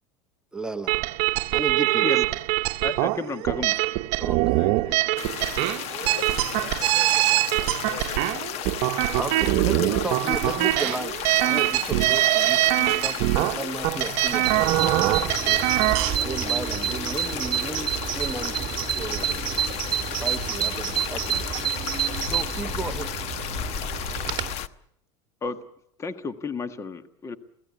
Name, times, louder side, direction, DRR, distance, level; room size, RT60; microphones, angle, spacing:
voice 1, 0.5-1.0 1.5-2.3 4.2-4.6 9.2-15.7 16.2-19.4 20.1-21.7 22.2-23.1, right 2 dB, 5° right, 8 dB, 0.9 m, -34 dB
sound 1, 0.9-16.2, right 19 dB, 60° right, 0.9 m, -23 dB
voice 2, 2.8-3.8 25.4-25.6 26.0-27.4, left 4 dB, 20° left, 11 dB, 1.4 m, -32 dB
voice 3, 4.5-5.0 6.0-8.5 9.0-10.4, left 5 dB, 75° left, 10 dB, 3.6 m, -43 dB
sound 2, 5.2-24.7, left 10 dB, 50° left, 1.1 m, -34 dB
Bird vocalization bird call bird song, 14.4-24.6, right 10 dB, 35° right, 1.7 m, -29 dB
28.0 x 17.5 x 8.1 m, 0.76 s
supercardioid pair, 125°, 14 cm